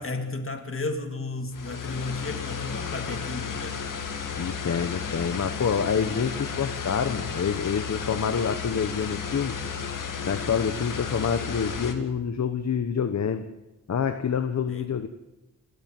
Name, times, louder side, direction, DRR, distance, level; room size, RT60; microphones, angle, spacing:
voice 1, 0.0-3.8 5.1-5.4 5.9-6.1 14.7-14.8, left 3 dB, 45° left, 2.5 m, -33 dB
sound 1, 1.5-11.9, left 6 dB, 90° left, 2.2 m, -33 dB
voice 2, 4.4-9.5 10.3-13.4 13.9-15.1, left 7 dB, 60° left, 1.1 m, -27 dB
28.5 x 13.5 x 7.6 m
wide cardioid pair, 110°, 31 cm